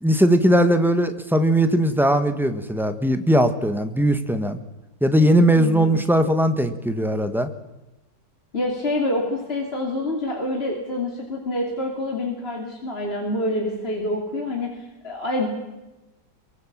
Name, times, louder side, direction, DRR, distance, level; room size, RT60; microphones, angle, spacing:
voice 1, 0.0-4.6 5.0-7.5, equal, ahead, 8 dB, 1.2 m, -19 dB
voice 2, 5.6-6.0 8.5-15.5, left 1 dB, 30° left, 0 dB, 3.0 m, -27 dB
23.5 x 23.0 x 7.5 m, 1.0 s
omnidirectional pair, 2.0 m